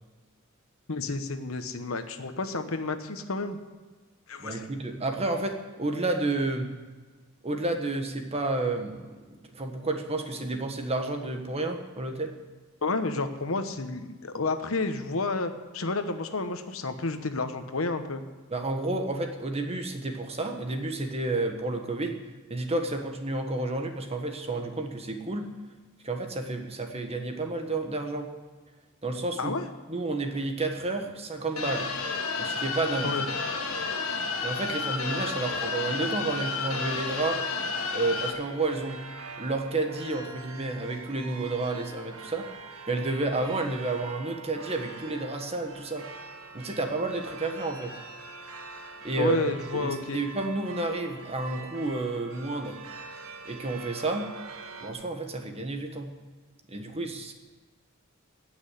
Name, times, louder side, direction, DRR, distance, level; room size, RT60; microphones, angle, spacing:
voice 1, 0.9-3.6 4.3-4.7 12.8-18.2 29.4-29.7 33.0-33.3 49.2-50.2, left 3 dB, 70° left, 8 dB, 1.1 m, -30 dB
voice 2, 4.4-6.7 7.4-9.2 9.5-12.3 18.5-22.2 22.5-25.5 26.0-28.3 29.0-29.6 29.9-31.9 32.4-33.2 34.4-37.4 37.9-39.0 39.4-42.5 42.9-46.1 46.5-47.9 49.0-49.4 49.7-52.8 53.4-54.3 54.8-56.1 56.7-57.3, right 2 dB, 30° right, 4 dB, 1.4 m, -30 dB
sound 1, 31.6-38.3, left 4 dB, 85° left, 1.9 m, -31 dB
sound 2, 37.7-54.9, right 4 dB, 85° right, 1.6 m, -44 dB
17.5 x 6.3 x 8.2 m, 1.4 s
head